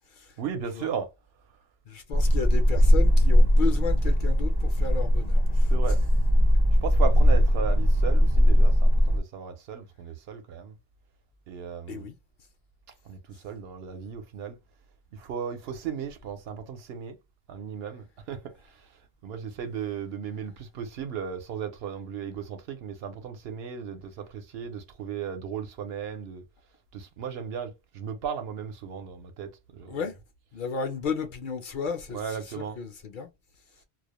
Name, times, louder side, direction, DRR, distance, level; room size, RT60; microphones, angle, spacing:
voice 1, 0.4-1.1 5.7-6.0 6.8-10.7 11.5-12.1 13.0-14.6 15.1-17.2 17.5-26.4 26.9-30.0 31.8-32.8, right 7 dB, 75° right, 0.8 m, -36 dB
voice 2, 1.9-5.7 11.9-12.1 29.9-30.2 30.5-33.3, left 5 dB, 60° left, 0.6 m, -34 dB
sound 1, 2.1-9.2, equal, 35° right, 0.4 m, -20 dB
2.2 x 2.0 x 2.8 m
omnidirectional pair, 1.1 m